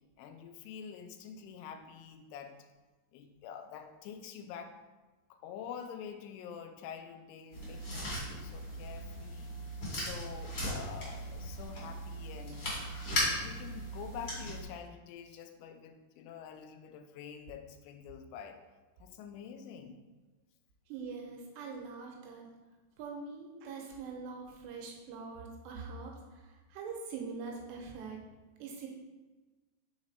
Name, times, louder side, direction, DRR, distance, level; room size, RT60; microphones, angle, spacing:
voice 1, 0.2-2.6 3.1-4.8 5.3-12.7 13.0-18.6 19.0-20.0, left 7 dB, 80° left, 6 dB, 2.4 m, -47 dB
sound 1, 7.5-14.6, equal, 40° left, 1.8 m, -38 dB
voice 2, 20.9-22.4 23.0-28.2 28.6-28.9, right 4 dB, 85° right, 0 dB, 2.9 m, -43 dB
6.2 x 3.8 x 4.1 m, 1.2 s
omnidirectional pair, 5.0 m